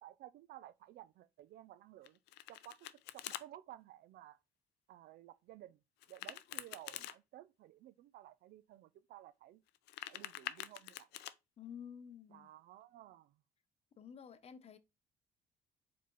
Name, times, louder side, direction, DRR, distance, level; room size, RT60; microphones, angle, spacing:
voice 1, 0.0-2.2 2.5-4.4 4.9-5.8 6.1-9.6 10.1-11.1 12.3-13.4, right 13 dB, 65° right, 0.4 m, -55 dB
Domestic sounds home sounds, 2.0-3.4 6.0-7.2 9.7-11.3, left 15 dB, 85° left, 0.4 m, -46 dB
voice 2, 11.6-12.5 14.0-14.8, left 8 dB, 40° left, 0.6 m, -51 dB
4.6 x 3.7 x 3.0 m
cardioid pair, 110°, 17 cm